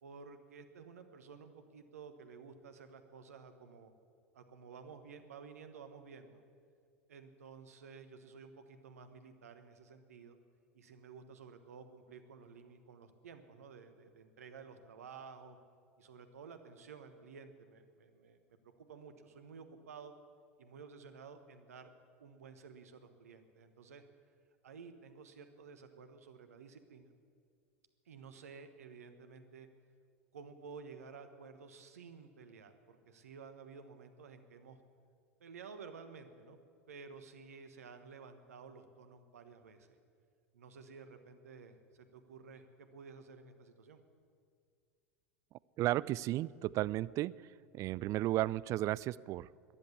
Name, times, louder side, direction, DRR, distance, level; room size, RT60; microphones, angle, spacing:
voice 1, 0.0-3.9 4.3-6.4 7.1-10.4 10.7-15.6 16.0-20.1 20.6-21.9 22.2-24.0 24.6-27.1 28.0-29.7 30.3-34.8 35.4-36.6 36.9-40.0 40.5-44.0, right 5 dB, 75° right, 9 dB, 1.3 m, -53 dB
voice 2, 45.8-47.3 47.7-49.7, right 15 dB, 40° right, 21 dB, 0.3 m, -34 dB
14.0 x 10.5 x 8.5 m, 2.2 s
figure-of-eight pair, 80°, 8 cm